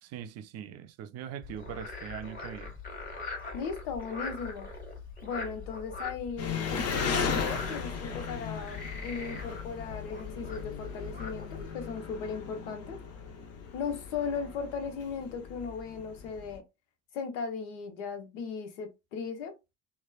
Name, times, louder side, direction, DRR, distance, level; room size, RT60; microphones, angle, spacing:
voice 1, 0.0-2.8, right 9 dB, 45° right, 0.4 m, -41 dB
Frog, 1.4-11.7, left 4 dB, 25° left, 1.3 m, -42 dB
voice 2, 3.5-4.7 5.2-13.0 13.7-16.6 17.1-19.5, left 5 dB, 70° left, 0.9 m, -37 dB
Engine, 6.4-16.6, left 5 dB, 40° left, 0.8 m, -37 dB
3.1 x 2.2 x 2.2 m
hypercardioid pair, 60°, 38 cm